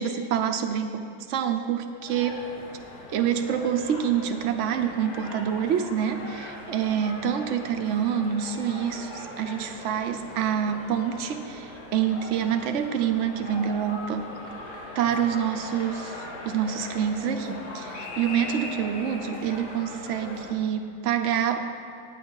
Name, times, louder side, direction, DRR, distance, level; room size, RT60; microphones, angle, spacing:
voice 1, 0.0-2.4 3.1-14.3 14.9-21.6, right 8 dB, 60° right, 7 dB, 1.0 m, -27 dB
sound 1, 2.0-20.5, left 2 dB, 75° left, 1.9 m, -40 dB
9.7 x 8.5 x 5.5 m, 2.7 s
omnidirectional pair, 1.6 m